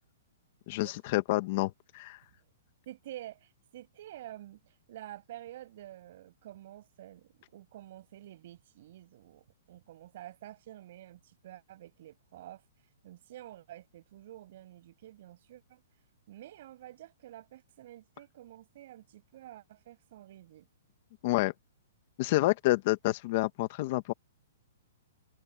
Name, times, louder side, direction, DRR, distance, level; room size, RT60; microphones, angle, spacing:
voice 1, 0.7-2.2 21.2-21.5 22.2-24.1, left 19 dB, 40° left, 1.5 m, -28 dB
voice 2, 2.8-12.6 13.0-15.8 16.3-20.7, right 13 dB, 50° right, 6.7 m, -49 dB
hypercardioid pair, 160°, 0 cm